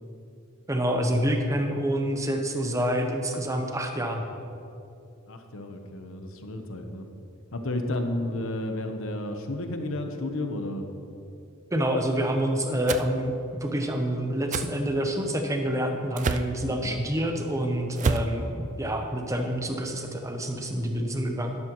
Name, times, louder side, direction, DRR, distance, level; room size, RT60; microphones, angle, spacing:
voice 1, 0.7-4.2 11.7-13.3 13.6-21.6, equal, 15° right, 4 dB, 0.8 m, -27 dB
voice 2, 5.3-7.0 7.5-10.8 16.6-17.0, left 1 dB, 65° left, 5 dB, 1.0 m, -32 dB
sound 1, 12.9-13.1 14.5-14.7 16.2-16.5 18.0-18.3, right 4 dB, 35° right, 0.3 m, -27 dB
12.0 x 11.5 x 3.1 m, 2.7 s
head